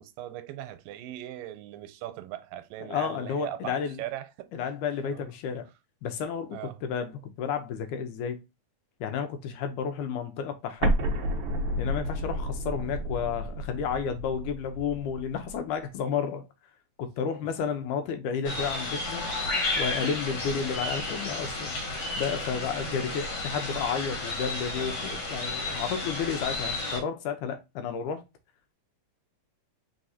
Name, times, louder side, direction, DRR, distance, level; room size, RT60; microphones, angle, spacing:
voice 1, 0.0-4.5 5.0-5.2 6.5-6.8, right 13 dB, 90° right, 2.3 m, -39 dB
voice 2, 2.9-4.0 4.5-5.7 6.0-8.4 9.0-10.9 11.8-16.4 17.0-19.2 19.8-21.8 22.2-28.2, left 7 dB, 80° left, 2.1 m, -32 dB
Explosion, 10.8-15.6, right 1 dB, 70° right, 1.1 m, -31 dB
sound 1, 18.4-27.0, left 2 dB, 60° left, 1.9 m, -32 dB
4.7 x 3.9 x 2.7 m
omnidirectional pair, 3.9 m